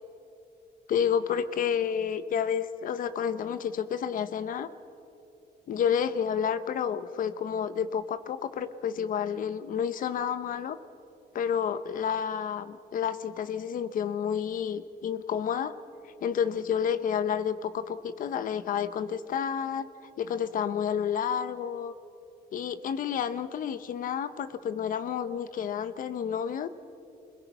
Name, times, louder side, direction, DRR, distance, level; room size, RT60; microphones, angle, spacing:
voice 1, 0.9-4.7 5.7-10.8 11.3-15.7 16.2-19.9 20.2-21.9 22.5-26.7, left 8 dB, 55° left, 13 dB, 0.9 m, -30 dB
29.5 x 21.5 x 5.6 m, 2.8 s
cardioid pair, 155°, 17 cm